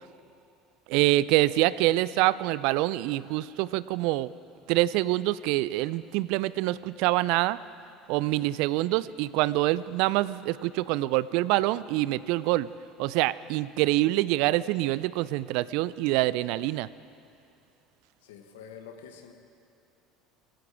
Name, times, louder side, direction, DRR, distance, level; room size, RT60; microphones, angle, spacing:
voice 1, 0.9-4.3 4.7-7.6 8.1-12.7 13.0-16.9, right 17 dB, 65° right, 18 dB, 0.3 m, -25 dB
voice 2, 8.2-8.6 18.2-19.3, left 7 dB, 75° left, 5 dB, 1.3 m, -47 dB
19.0 x 16.5 x 3.5 m, 2.7 s
hypercardioid pair, 70°, 0 cm